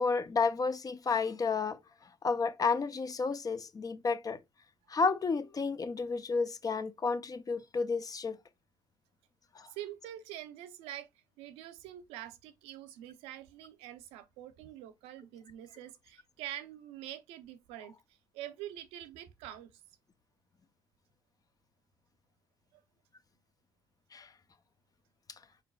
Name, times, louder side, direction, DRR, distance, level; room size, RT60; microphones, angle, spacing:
voice 1, 0.0-1.8 2.2-4.4 4.9-8.4 9.6-9.7 24.1-24.3, left 4 dB, 35° left, 0.6 m, -31 dB
voice 2, 9.7-11.1 11.4-18.0 18.3-19.7 22.7-22.8, right 12 dB, 75° right, 0.5 m, -45 dB
4.9 x 3.7 x 2.3 m
hypercardioid pair, 50°, 10 cm